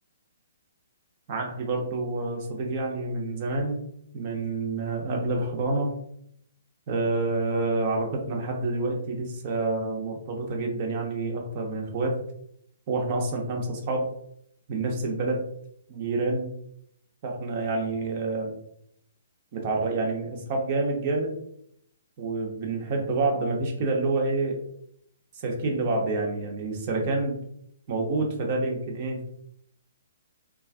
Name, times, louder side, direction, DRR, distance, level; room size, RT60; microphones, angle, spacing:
voice 1, 1.3-3.8 4.1-6.0 6.9-12.2 12.9-14.1 14.7-15.4 15.9-16.5 17.2-18.5 19.5-21.3 22.2-24.6 25.3-27.4 27.9-29.2, right 3 dB, 40° right, 1 dB, 0.7 m, -28 dB
3.2 x 2.4 x 2.4 m, 0.69 s
figure-of-eight pair, 125°, 0 cm